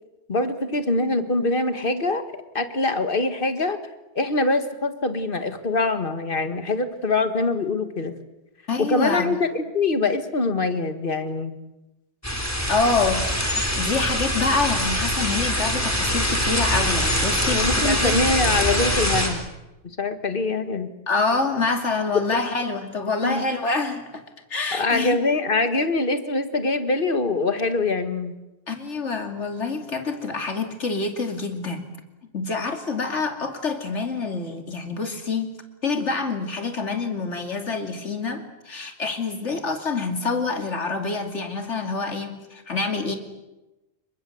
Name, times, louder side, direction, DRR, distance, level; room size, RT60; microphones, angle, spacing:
voice 1, 0.3-2.2 2.5-3.8 4.2-8.1 8.8-11.5 17.5-19.5 20.0-20.9 23.2-23.4 24.7-28.4, left 3 dB, 45° left, 9 dB, 1.9 m, -24 dB
voice 2, 8.7-9.4 12.7-18.2 21.1-24.2 24.5-25.2 28.7-31.9 32.3-35.6 35.8-43.2, left 4 dB, 70° left, 5 dB, 3.0 m, -26 dB
sound 1, 12.2-19.3, equal, 10° left, 4.3 m, -23 dB
27.5 x 23.5 x 8.0 m, 1.0 s
omnidirectional pair, 1.2 m